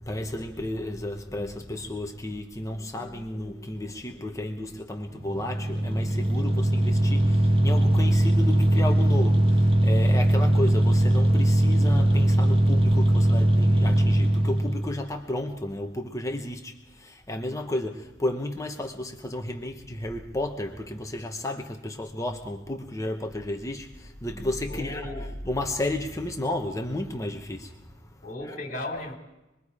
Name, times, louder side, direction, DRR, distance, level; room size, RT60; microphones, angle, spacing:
voice 1, 0.0-25.1 25.4-27.7, left 1 dB, 15° left, 1.0 m, -32 dB
sound 1, 5.1-14.9, right 1 dB, 30° right, 1.3 m, -21 dB
voice 2, 24.7-25.3 28.2-29.2, left 2 dB, 40° left, 4.2 m, -36 dB
26.0 x 22.0 x 4.9 m
head